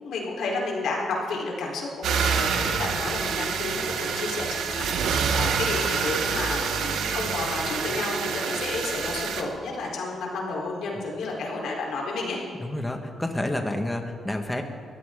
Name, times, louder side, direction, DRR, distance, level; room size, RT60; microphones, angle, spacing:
voice 1, 0.0-12.4, left 3 dB, 80° left, -2 dB, 4.1 m, -31 dB
sound 1, 2.0-9.4, right 6 dB, 90° right, 1.4 m, -27 dB
voice 2, 12.6-14.6, left 1 dB, 10° left, 4 dB, 1.7 m, -29 dB
22.5 x 15.5 x 3.9 m, 2.2 s
cardioid pair, 110°, 0 cm